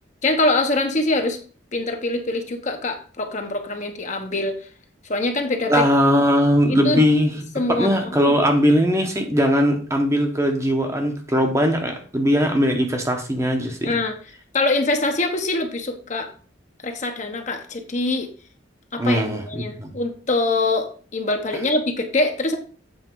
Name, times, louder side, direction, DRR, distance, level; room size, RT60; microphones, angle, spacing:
voice 1, 0.2-1.4 1.7-4.6 5.1-5.8 6.7-7.0 7.5-8.4 13.8-14.2 14.5-16.3 16.8-18.3 18.9-22.6, left 2 dB, 40° left, 5 dB, 1.0 m, -24 dB
voice 2, 5.7-7.3 7.7-13.9 19.0-19.9, equal, 15° right, 3 dB, 1.0 m, -19 dB
8.1 x 4.5 x 4.6 m, 0.41 s
head